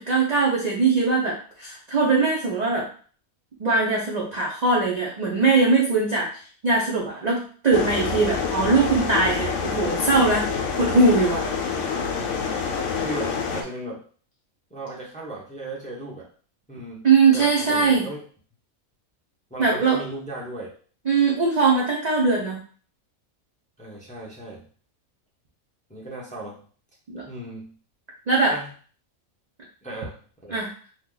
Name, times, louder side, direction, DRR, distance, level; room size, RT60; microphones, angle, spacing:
voice 1, 0.0-2.9 3.6-6.3 6.6-10.5 10.8-11.5 17.0-18.1 19.6-20.0 21.1-22.6 27.1-27.2 28.3-28.5 30.5-30.7, right 4 dB, 45° right, -4 dB, 0.5 m, -21 dB
sound 1, 7.7-13.6, left 5 dB, 65° left, 0.9 m, -27 dB
voice 2, 13.0-14.0 14.7-16.3 16.7-17.1 17.3-18.2 19.5-20.7 23.8-24.6 25.9-26.6 27.3-27.7 28.5-28.7 29.8-30.6, right 2 dB, 5° left, -5 dB, 0.6 m, -36 dB
2.9 x 2.3 x 3.8 m, 0.43 s
omnidirectional pair, 1.5 m